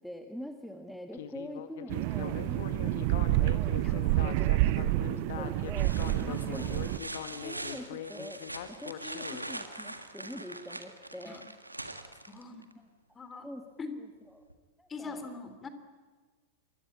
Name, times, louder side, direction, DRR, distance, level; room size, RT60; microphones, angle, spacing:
voice 1, 0.0-6.8 7.3-8.4 8.7-11.5 12.7-12.9 13.4-13.7 14.0-14.5 14.8-15.3, equal, ahead, 5 dB, 1.6 m, -45 dB
Speech synthesizer, 1.1-9.5, left 10 dB, 55° left, 1.8 m, -42 dB
sound 1, 1.9-7.0, right 17 dB, 45° right, 0.9 m, -28 dB
sound 2, 5.8-12.7 14.5-14.6, right 2 dB, 85° right, 1.7 m, -43 dB
voice 2, 6.1-7.0 11.3-11.4 12.3-12.7 13.1-13.5 13.8-13.9 14.9-15.7, left 4 dB, 20° left, 9 dB, 3.3 m, -42 dB
27.5 x 23.0 x 8.7 m, 1.4 s
figure-of-eight pair, 90°, 0 cm